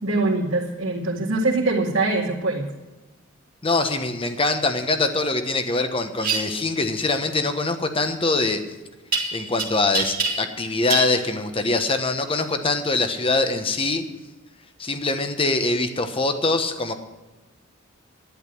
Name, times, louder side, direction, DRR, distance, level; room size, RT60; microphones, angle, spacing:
voice 1, 0.0-2.7, right 2 dB, 70° right, -5 dB, 2.1 m, -23 dB
voice 2, 3.6-8.6 9.3-14.0 14.8-16.9, left 3 dB, 25° left, 7 dB, 1.1 m, -23 dB
sound 1, 6.2-6.4 9.1-9.6 9.9-10.6 10.9-11.1, right 5 dB, 45° right, 2.0 m, -25 dB
11.5 x 10.5 x 6.1 m, 1.1 s
head